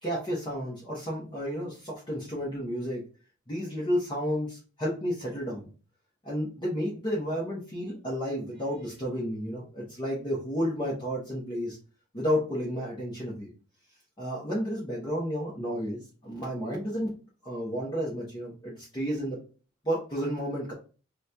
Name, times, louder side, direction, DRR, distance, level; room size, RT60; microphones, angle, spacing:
voice 1, 0.0-3.0 3.5-5.7 6.2-11.8 12.1-13.5 14.2-17.1 17.4-19.4 19.8-20.7, equal, 25° left, -6 dB, 0.8 m, -31 dB
2.9 x 2.2 x 3.8 m, 0.36 s
head